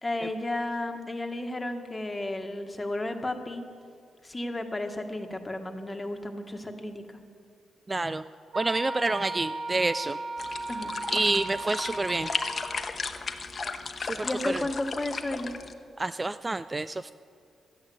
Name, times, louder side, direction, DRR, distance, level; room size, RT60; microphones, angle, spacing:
voice 1, 0.0-3.7 4.2-7.0 10.7-10.9 14.2-15.6, left 1 dB, 20° left, 5 dB, 1.7 m, -33 dB
voice 2, 7.9-8.2 8.6-10.2 11.1-12.3 14.0-14.6 16.0-17.1, right 2 dB, 25° right, 13 dB, 0.4 m, -28 dB
Wind instrument woodwind instrument, 8.5-12.9, right 2 dB, 65° right, 1.2 m, -36 dB
sound 1, 10.4-15.7, left 4 dB, 45° left, 1.0 m, -35 dB
13.0 x 8.8 x 9.5 m, 2.4 s
supercardioid pair, 55°, 0 cm